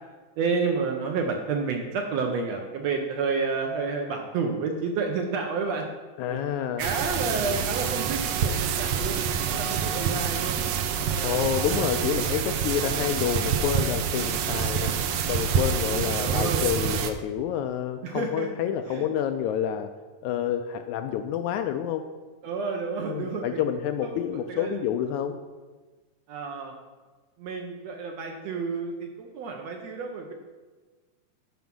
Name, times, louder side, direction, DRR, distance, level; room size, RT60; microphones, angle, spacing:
voice 1, 0.4-5.9 6.3-10.6 11.1-11.5 16.2-16.9 18.0-18.5 18.9-19.1 22.4-23.6 24.0-24.2 24.5-24.9 26.3-26.7 27.4-30.3, right 4 dB, 70° right, 3 dB, 1.7 m, -30 dB
voice 2, 6.2-6.8 11.2-14.9 15.3-19.9 20.2-22.0 23.1-25.3, left 9 dB, 80° left, 7 dB, 1.8 m, -28 dB
sound 1, 6.8-17.1, right 7 dB, 85° right, 1.4 m, -27 dB
9.3 x 5.6 x 6.1 m, 1.3 s
omnidirectional pair, 3.7 m